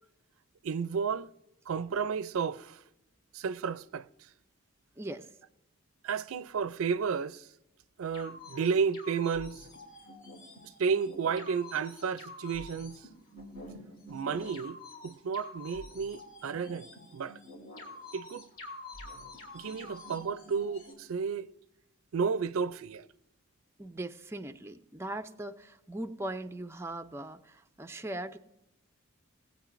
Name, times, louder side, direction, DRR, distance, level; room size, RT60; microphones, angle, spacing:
voice 1, 0.6-1.3 1.7-2.8 3.3-4.1 6.0-7.5 8.0-9.7 10.8-13.0 14.1-17.4 18.1-18.5 19.5-21.5 22.1-23.1, right 6 dB, 80° right, 0.4 m, -32 dB
voice 2, 5.0-5.3 23.8-28.4, right 1 dB, 10° right, 0.4 m, -39 dB
sound 1, 8.1-20.9, left 2 dB, 80° left, 3.1 m, -47 dB
19.5 x 8.6 x 2.5 m
head